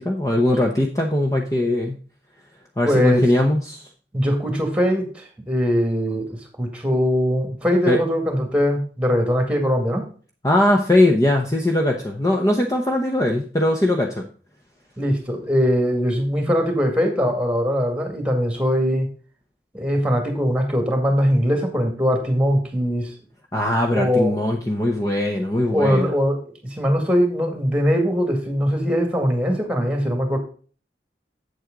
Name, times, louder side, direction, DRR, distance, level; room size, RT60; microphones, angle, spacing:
voice 1, 0.0-2.0 2.8-3.9 7.9-8.0 10.4-14.3 23.5-26.1, left 1 dB, 20° left, 2 dB, 0.8 m, -20 dB
voice 2, 2.8-3.2 4.1-10.0 15.0-19.1 19.7-23.1 23.9-24.4 25.7-30.4, equal, 5° right, 4 dB, 2.0 m, -21 dB
8.1 x 7.7 x 3.8 m, 0.40 s
head